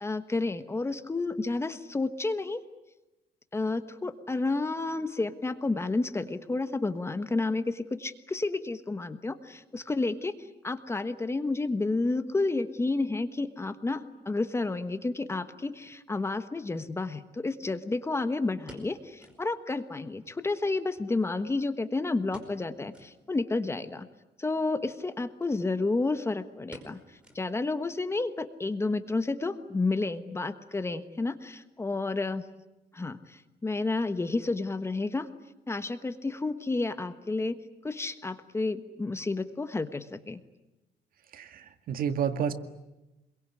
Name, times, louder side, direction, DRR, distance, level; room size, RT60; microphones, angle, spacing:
voice 1, 0.0-2.6 3.5-24.1 24.4-27.0 27.3-32.4 32.9-35.3 35.7-40.4, left 3 dB, 15° left, 11 dB, 1.3 m, -31 dB
sound 1, 16.1-16.2 18.2-19.5 19.8-19.9 20.2-20.3 21.0-21.8 22.3-22.7 22.9-23.2 23.7-23.8 24.7-25.0 25.4-25.5 25.8-26.2 26.7-27.8 28.1-28.2 28.8-29.1 29.4-29.5, equal, 5° right, 5.1 m, -52 dB
voice 2, 41.3-42.5, right 8 dB, 60° right, 9 dB, 2.0 m, -30 dB
26.5 x 23.0 x 9.8 m, 0.99 s
cardioid pair, 145°, 17 cm